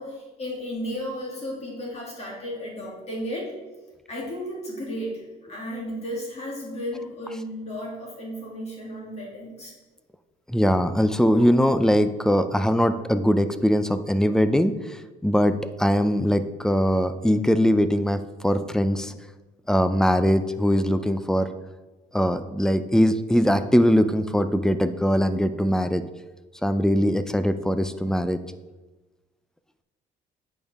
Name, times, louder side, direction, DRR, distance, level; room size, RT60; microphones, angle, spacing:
voice 1, 0.0-3.5 4.1-9.7, equal, 40° left, -3 dB, 2.6 m, -34 dB
voice 2, 10.5-19.1 19.7-21.5 22.1-26.0 26.6-28.4, equal, 5° left, 11 dB, 0.4 m, -21 dB
8.5 x 5.3 x 3.5 m, 1.2 s
cardioid pair, 110°, 17 cm